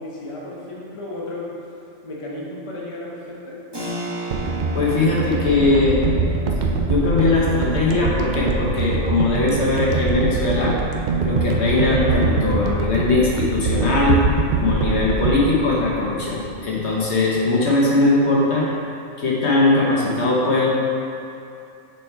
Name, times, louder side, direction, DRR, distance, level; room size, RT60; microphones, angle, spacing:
voice 1, 0.0-1.8 2.0-3.6, left 1 dB, 25° left, -5 dB, 1.0 m, -34 dB
Keyboard (musical), 3.7-14.1, right 1 dB, 20° right, 1.1 m, -38 dB
sound 1, 4.3-16.6 16.9-17.1, right 3 dB, 55° right, 0.5 m, -23 dB
voice 2, 4.7-6.0 6.9-10.8 11.2-14.2 14.5-18.7 19.2-20.7, left 2 dB, 60° left, -4 dB, 1.2 m, -20 dB
6.9 x 4.3 x 4.6 m, 2.6 s
omnidirectional pair, 1.3 m